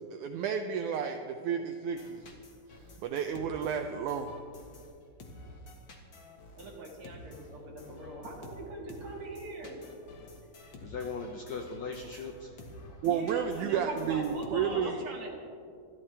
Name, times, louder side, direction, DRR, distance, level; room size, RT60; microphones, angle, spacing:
voice 1, 0.1-2.2 3.0-4.3 13.0-15.0, right 7 dB, 80° right, 6 dB, 1.8 m, -31 dB
sound 1, 1.9-14.5, left 1 dB, 50° left, 1.6 m, -50 dB
voice 2, 6.6-9.8 13.0-15.4, right 2 dB, 45° right, -1 dB, 2.3 m, -41 dB
voice 3, 10.8-12.9, left 4 dB, 75° left, 3 dB, 1.6 m, -39 dB
27.0 x 12.5 x 3.3 m, 2.3 s
omnidirectional pair, 4.1 m